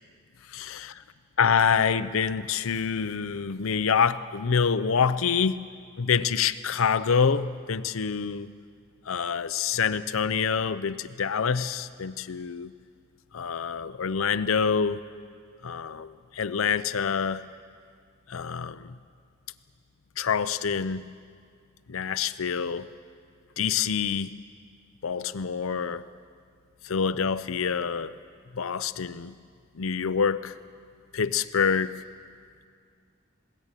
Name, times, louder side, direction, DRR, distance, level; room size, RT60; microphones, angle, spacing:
voice 1, 0.5-0.9 1.4-5.7 6.0-8.5 9.1-12.7 13.3-15.0 15.6-17.4 18.3-18.9 20.2-21.1 21.9-22.9 23.6-24.3 25.0-26.0 26.8-28.1 28.5-29.3 29.8-30.5 31.1-32.0, left 6 dB, 90° left, 12 dB, 0.6 m, -26 dB
20.5 x 17.5 x 9.0 m, 2.1 s
head